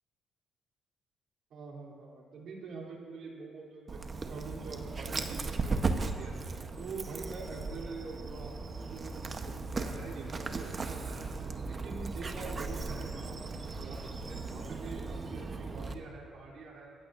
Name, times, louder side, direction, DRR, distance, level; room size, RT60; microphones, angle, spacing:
voice 1, 1.5-4.0 4.3-11.2 11.7-16.9, right 4 dB, 70° right, -3 dB, 3.3 m, -45 dB
Dog, 3.9-15.9, right 3 dB, 40° right, 1.0 m, -37 dB
22.0 x 15.0 x 2.6 m, 2.5 s
cardioid pair, 90°, 0 cm